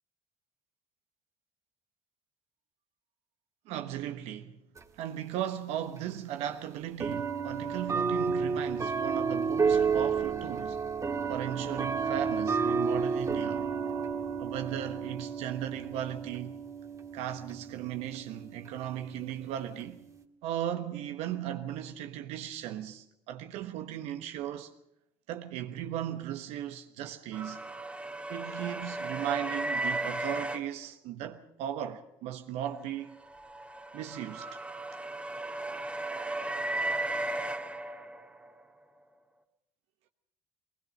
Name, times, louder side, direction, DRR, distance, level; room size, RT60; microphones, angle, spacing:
voice 1, 3.7-4.5 5.0-10.8 11.3-13.7 14.4-16.6 17.1-20.0 20.4-24.7 25.3-27.6 28.3-33.2 33.9-34.6, right 11 dB, 70° right, 1.2 m, -37 dB
sound 1, 4.8-4.9 6.0-6.1 7.0-20.2, right 5 dB, 30° right, 1.8 m, -32 dB
sound 2, 27.3-30.6 33.0-38.5, right 2 dB, 10° right, 2.0 m, -35 dB
20.5 x 19.5 x 6.6 m
hypercardioid pair, 65°, 11 cm